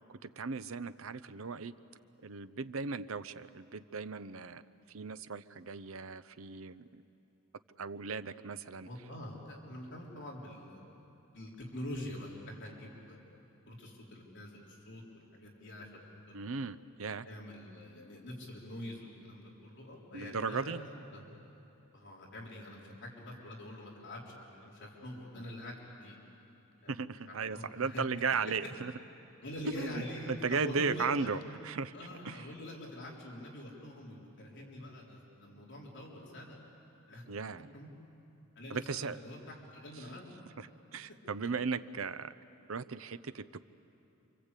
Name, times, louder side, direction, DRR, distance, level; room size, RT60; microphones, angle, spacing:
voice 1, 0.2-1.7 2.2-4.6 4.9-7.0 7.8-8.9 16.3-17.3 20.1-20.8 26.9-28.9 29.8-31.9 32.2-32.5 37.3-37.7 38.7-39.2 40.6-40.7 40.9-42.3 42.7-43.4, right 5 dB, 65° right, 13 dB, 0.7 m, -36 dB
voice 2, 8.8-11.0 11.3-13.2 13.7-16.0 16.3-16.7 17.2-21.3 21.9-26.2 26.8-27.0 27.3-28.0 29.4-31.3 31.9-36.6 37.1-37.2 37.7-37.9 38.6-40.3, left 1 dB, 55° left, -3 dB, 3.9 m, -45 dB
28.0 x 25.5 x 8.3 m, 3.0 s
head